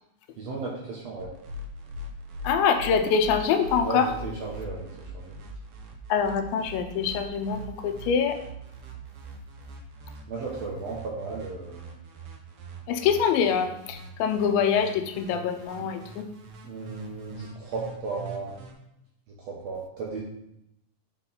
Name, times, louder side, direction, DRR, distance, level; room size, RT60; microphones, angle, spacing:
voice 1, 0.4-1.3 3.8-4.9 5.1-5.3 10.3-11.9 16.6-18.5 19.4-20.2, right 4 dB, 65° right, -3 dB, 1.7 m, -35 dB
sound 1, 1.2-18.7, right 1 dB, 90° right, 1.2 m, -42 dB
voice 2, 2.4-4.1 6.1-8.3 12.9-16.2, left 6 dB, 90° left, 7 dB, 2.4 m, -24 dB
8.4 x 4.4 x 4.0 m, 0.81 s
omnidirectional pair, 4.0 m